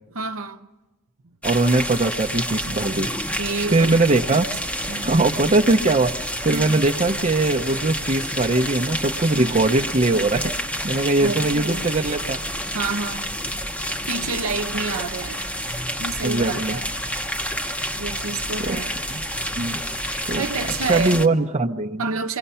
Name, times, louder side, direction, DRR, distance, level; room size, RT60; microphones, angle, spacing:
voice 1, 0.1-0.7 3.4-4.0 4.9-5.3 6.5-6.8 9.3-9.6 11.2-11.9 12.7-13.3 14.1-15.5 16.0-17.0 18.0-19.0 20.1-21.2 22.0-22.4, right 4 dB, 70° right, 0.9 m, -29 dB
sound 1, 1.4-21.3, equal, 5° left, 0.8 m, -29 dB
voice 2, 1.4-3.1 3.7-4.5 5.0-10.5 10.8-12.4 16.2-16.8 18.6-18.8 19.1-19.2 19.6-19.8 20.3-20.5 20.9-22.0, right 2 dB, 30° right, 0.8 m, -21 dB
28.0 x 22.5 x 5.6 m
head